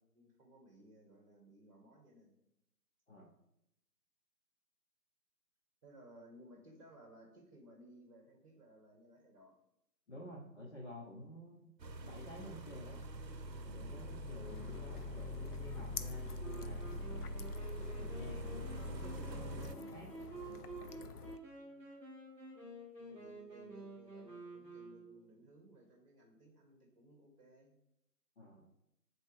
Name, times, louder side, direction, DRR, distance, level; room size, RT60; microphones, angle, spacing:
voice 1, 0.0-2.4 5.8-9.5 21.5-21.9 23.0-27.8, right 1 dB, 20° right, 1 dB, 1.4 m, -60 dB
voice 2, 10.1-11.7 12.0-13.0 13.6-16.8 17.8-20.1 21.0-21.1 28.4-28.7, equal, 45° left, -4 dB, 1.0 m, -51 dB
sound 1, 11.8-19.8, equal, 90° right, 0.6 m, -44 dB
sound 2, 14.4-21.4, left 6 dB, 65° left, 0.5 m, -50 dB
Wind instrument woodwind instrument, 16.4-25.4, right 2 dB, ahead, 1.1 m, -50 dB
6.6 x 4.1 x 3.5 m, 0.82 s
figure-of-eight pair, 155°, 49 cm